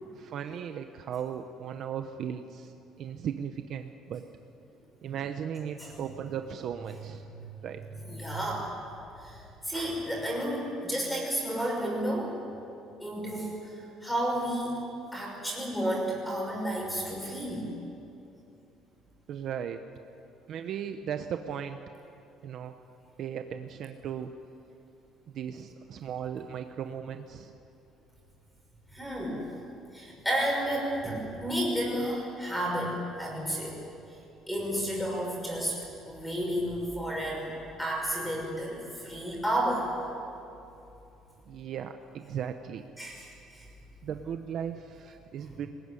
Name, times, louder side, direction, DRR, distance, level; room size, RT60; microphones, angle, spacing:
voice 1, 0.1-4.2 5.0-7.2 7.6-7.8 19.3-19.8 20.5-21.8 22.4-22.7 23.2-24.3 25.3-27.5 41.5-42.8 44.0-45.7, right 8 dB, 45° right, 7 dB, 0.9 m, -37 dB
voice 2, 8.0-8.7 9.2-12.3 13.0-14.8 15.1-17.7 28.9-29.4 29.9-33.8 34.5-35.8 36.0-39.9 43.0-43.7, equal, 5° left, -1 dB, 6.1 m, -32 dB
24.0 x 20.5 x 9.8 m, 2.8 s
cardioid pair, 175°, 0 cm